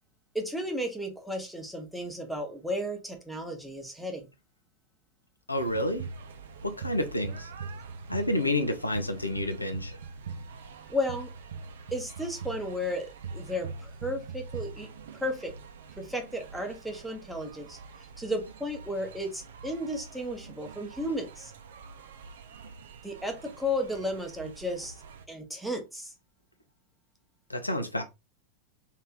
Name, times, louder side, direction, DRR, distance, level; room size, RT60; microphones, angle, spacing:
voice 1, 0.3-4.3 10.9-11.3 11.9-14.9 15.2-15.5 16.0-17.8 18.2-21.5 23.0-25.0 25.3-26.1, left 1 dB, ahead, 1.0 m, -34 dB
voice 2, 5.5-6.0 6.6-7.5 8.1-10.0 27.5-28.0, left 1 dB, 85° left, 0.6 m, -29 dB
sound 1, 5.6-25.2, right 4 dB, 60° right, 0.6 m, -43 dB
3.3 x 2.8 x 3.5 m
figure-of-eight pair, 90°, 0 cm